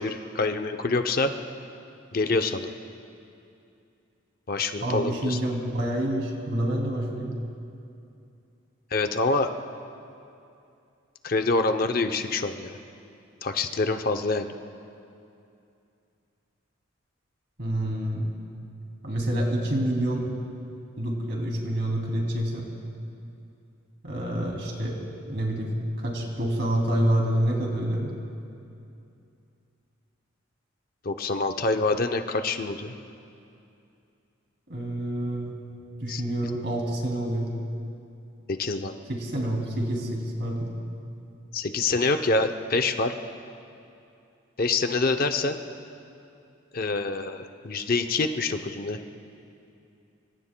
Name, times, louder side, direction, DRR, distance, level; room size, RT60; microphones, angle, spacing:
voice 1, 0.0-1.3 2.1-2.7 4.5-5.4 8.9-9.5 11.2-12.8 13.4-14.5 31.0-32.9 36.1-36.2 38.5-38.9 41.5-43.1 44.6-45.6 46.7-49.0, left 3 dB, 45° left, 7 dB, 0.6 m, -26 dB
voice 2, 4.8-7.3 17.6-18.3 19.0-20.3 21.0-22.7 24.0-25.0 25.3-28.1 34.7-35.5 36.0-37.5 39.1-40.7, right 1 dB, 55° right, 0 dB, 2.7 m, -27 dB
26.0 x 24.5 x 2.2 m, 2.6 s
head